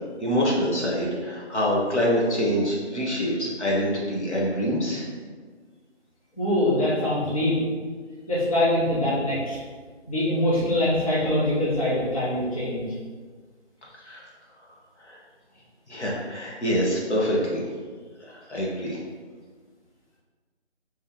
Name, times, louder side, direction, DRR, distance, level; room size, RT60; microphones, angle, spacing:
voice 1, 0.2-5.0 14.0-14.2 15.1-15.2 15.9-17.6 18.3-19.0, equal, 75° left, -4 dB, 1.3 m, -25 dB
voice 2, 6.4-7.6 8.3-9.6 10.1-12.8, left 1 dB, 30° left, -9 dB, 0.9 m, -23 dB
3.2 x 3.0 x 3.6 m, 1.5 s
figure-of-eight pair, 165°, 35 cm